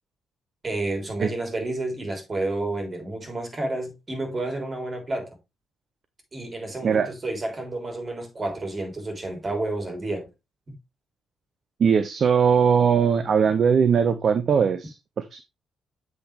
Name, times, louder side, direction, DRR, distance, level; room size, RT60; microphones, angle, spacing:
voice 1, 0.6-5.4 6.3-10.3 10.7-10.8, right 2 dB, 30° right, 3.5 m, -30 dB
voice 2, 11.8-15.4, right 6 dB, 45° right, 0.7 m, -20 dB
7.8 x 6.3 x 3.3 m
figure-of-eight pair, 40°, 0 cm